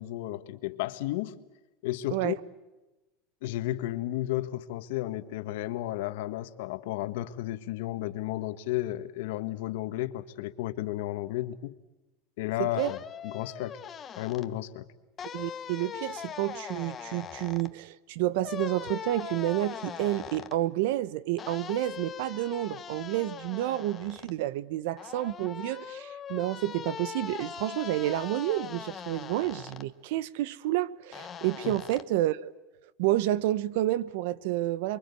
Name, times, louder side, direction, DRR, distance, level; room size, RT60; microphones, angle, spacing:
voice 1, 0.0-1.4 1.8-2.4 3.4-11.7 12.4-13.8 14.2-14.9 31.6-31.7, left 15 dB, 75° left, 1.5 m, -33 dB
voice 2, 12.6-12.9 15.3-32.5 33.0-35.0, right 15 dB, 70° right, 0.9 m, -30 dB
sound 1, 12.8-14.5 15.2-17.7 18.4-20.6 21.4-24.3 25.0-29.9 31.1-32.0, left 8 dB, 20° left, 1.1 m, -41 dB
28.5 x 23.5 x 8.4 m
supercardioid pair, 165°, 0 cm